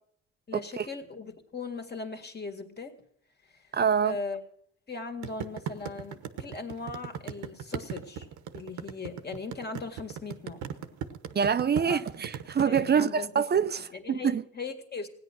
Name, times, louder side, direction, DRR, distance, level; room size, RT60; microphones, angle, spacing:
voice 1, 0.5-3.0 3.5-3.6 4.0-4.4 4.9-8.3 8.5-10.6 11.8-12.0 12.7-13.3 13.9-15.1, left 4 dB, 35° left, 2.1 m, -38 dB
voice 2, 3.7-4.2 11.3-14.4, right 7 dB, 35° right, 0.6 m, -25 dB
sound 1, 5.2-12.8, right 9 dB, 80° right, 1.1 m, -37 dB
16.5 x 9.8 x 6.2 m
cardioid pair, 90°, 30 cm